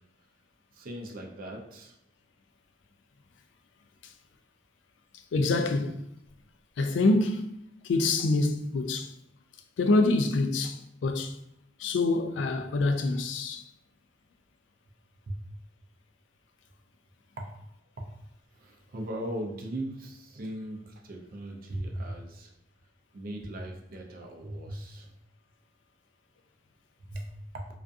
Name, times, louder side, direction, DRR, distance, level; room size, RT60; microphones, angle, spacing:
voice 1, 0.7-1.9 15.3-15.4 17.4-17.5 18.0-18.1 18.6-22.5 23.1-25.1 27.1-27.7, right 1 dB, 50° right, 0.4 m, -38 dB
voice 2, 5.3-6.0 6.8-7.5 7.8-9.1 9.8-10.8 11.0-11.3 11.8-13.6, left 2 dB, 80° left, 0.3 m, -25 dB
2.5 x 2.4 x 2.3 m
head